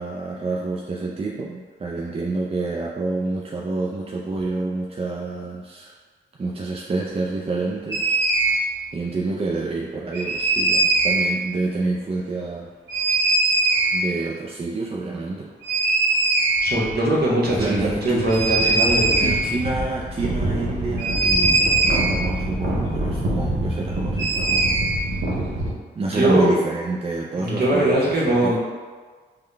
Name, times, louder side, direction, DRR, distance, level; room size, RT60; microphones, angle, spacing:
voice 1, 0.0-5.9 6.4-8.2 8.9-12.7 13.9-15.5 17.5-18.3 19.2-24.4 25.9-28.6, right 3 dB, 30° right, -3 dB, 0.4 m, -28 dB
sound 1, 7.9-8.6 10.1-11.3 12.9-14.0 15.6-16.9 17.2-17.3 17.5-25.7, right 2 dB, 70° right, 0.8 m, -22 dB
voice 2, 16.6-19.3 26.1-26.6 27.4-28.6, right 1 dB, 55° right, -5 dB, 1.2 m, -21 dB
3.6 x 2.2 x 3.3 m, 1.4 s
supercardioid pair, 45°, 20 cm